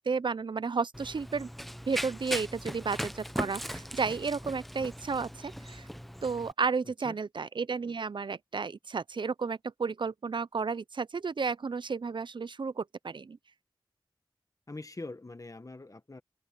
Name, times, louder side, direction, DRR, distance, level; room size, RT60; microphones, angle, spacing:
voice 1, 0.0-1.5 1.9-5.8 6.2-13.4, right 5 dB, 60° right, 0.5 m, -32 dB
Run, 0.9-6.5, equal, ahead, 0.6 m, -39 dB
voice 2, 6.8-7.1 14.7-16.2, left 2 dB, 40° left, 1.3 m, -43 dB
open air
wide cardioid pair, 55°, 9 cm